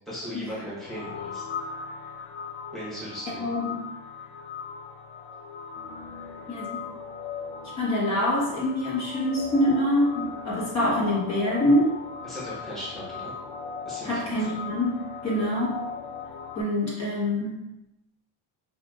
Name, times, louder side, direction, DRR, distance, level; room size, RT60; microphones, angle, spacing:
voice 1, 0.1-1.4 2.7-3.5 12.2-13.3 13.8-14.3, equal, ahead, -8 dB, 1.2 m, -37 dB
sound 1, 0.8-16.6, left 6 dB, 75° left, 0.6 m, -38 dB
voice 2, 3.4-3.8 6.5-6.8 7.8-12.0 14.0-15.8 16.5-17.7, left 1 dB, 35° left, -6 dB, 1.4 m, -25 dB
5.8 x 2.5 x 2.4 m, 0.93 s
cardioid pair, 130°, 45 cm